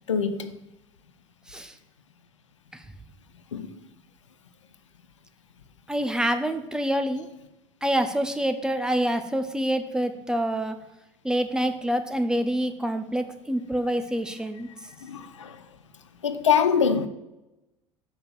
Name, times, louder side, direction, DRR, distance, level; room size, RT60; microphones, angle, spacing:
voice 1, 0.1-0.5 3.5-3.7 15.0-15.6 16.2-17.1, left 7 dB, 75° left, 0.6 m, -24 dB
voice 2, 5.9-7.3 7.8-10.8 11.2-14.7, right 1 dB, 5° right, 0.9 m, -26 dB
6.7 x 5.5 x 7.1 m
figure-of-eight pair, 70°, 16 cm